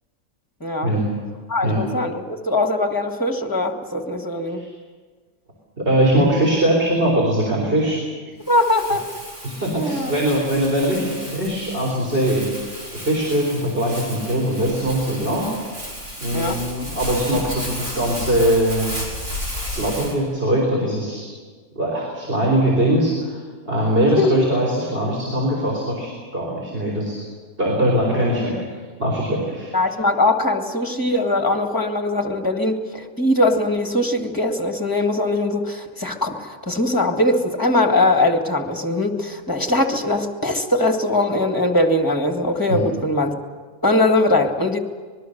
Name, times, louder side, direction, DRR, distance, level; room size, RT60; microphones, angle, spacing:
voice 1, 0.6-0.9 1.5-4.6 8.5-9.0 9.8-10.2 16.3-16.6 24.1-24.3 29.7-43.3 43.8-44.8, left 2 dB, 15° left, 4 dB, 1.8 m, -21 dB
voice 2, 5.8-8.0 9.4-12.5 12.9-15.4 16.2-18.9 19.5-21.3 21.8-27.2 27.6-28.5 29.0-29.7 42.7-42.8, right 1 dB, 40° right, -3 dB, 4.6 m, -21 dB
Crumpling crinkling, 8.4-20.1, equal, 65° right, 6.8 m, -33 dB
25.0 x 21.0 x 6.7 m, 1.5 s
omnidirectional pair, 1.5 m